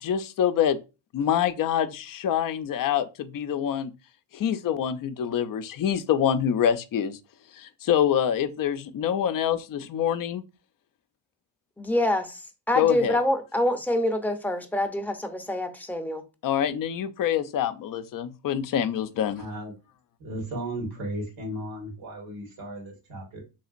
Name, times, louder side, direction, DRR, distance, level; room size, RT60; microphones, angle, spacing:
voice 1, 0.0-0.8 1.1-3.9 4.3-7.2 7.5-10.4 12.8-13.2 16.4-19.5, left 9 dB, 45° left, 0.5 m, -26 dB
voice 2, 11.8-16.2, left 1 dB, 5° left, 0.6 m, -26 dB
voice 3, 19.4-19.7 20.2-23.4, right 1 dB, 75° right, 1.8 m, -35 dB
3.4 x 2.8 x 2.5 m
supercardioid pair, 60°, 47 cm